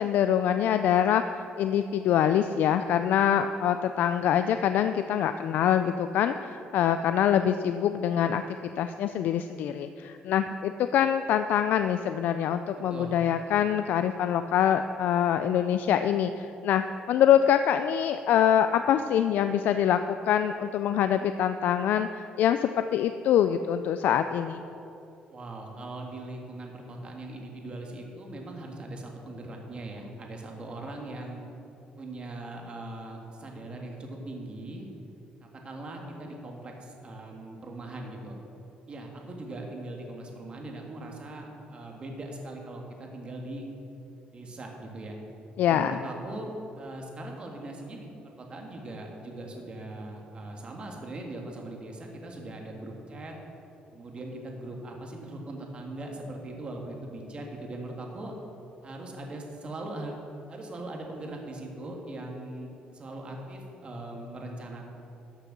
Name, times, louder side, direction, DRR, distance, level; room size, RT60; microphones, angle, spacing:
voice 1, 0.0-24.6 45.6-46.0, left 9 dB, 70° left, 9 dB, 0.4 m, -25 dB
voice 2, 12.9-13.2 25.3-31.4 32.0-34.9 35.4-38.4 38.9-43.7 44.3-45.2 45.6-48.1 48.4-53.3 53.9-58.3 58.8-60.1 60.5-64.9, right 2 dB, 35° right, 1 dB, 1.8 m, -40 dB
12.5 x 6.7 x 6.0 m, 2.8 s
cardioid pair, 135°, 3 cm